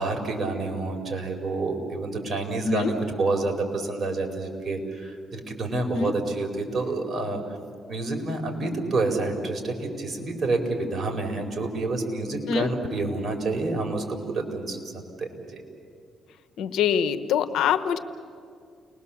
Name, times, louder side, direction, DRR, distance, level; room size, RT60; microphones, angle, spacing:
voice 1, 0.0-7.4 7.9-14.8 15.2-15.6, right 2 dB, 35° right, 2 dB, 4.5 m, -28 dB
voice 2, 16.6-18.0, left 8 dB, 80° left, 12 dB, 1.1 m, -24 dB
30.0 x 20.5 x 7.2 m, 2.2 s
cardioid pair, 90°, 0 cm